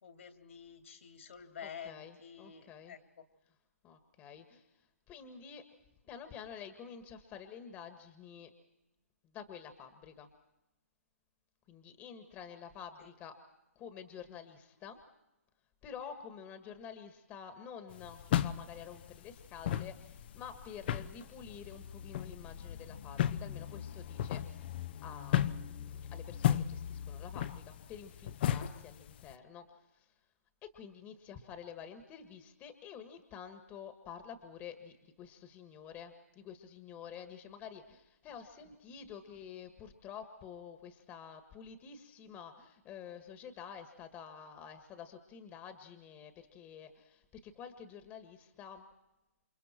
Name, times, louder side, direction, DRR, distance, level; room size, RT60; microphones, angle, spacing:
voice 1, 0.0-3.2, left 7 dB, 60° left, 6 dB, 2.8 m, -49 dB
voice 2, 1.6-3.0 3.8-5.6 6.1-8.5 9.2-10.3 11.7-13.3 13.7-15.0 15.8-24.4 25.0-30.1 30.6-48.8, left 7 dB, 20° left, 8 dB, 1.7 m, -49 dB
sound 1, 17.9-29.3, left 10 dB, 40° left, 0.8 m, -36 dB
29.0 x 26.0 x 4.5 m, 0.95 s
figure-of-eight pair, 140°, 8 cm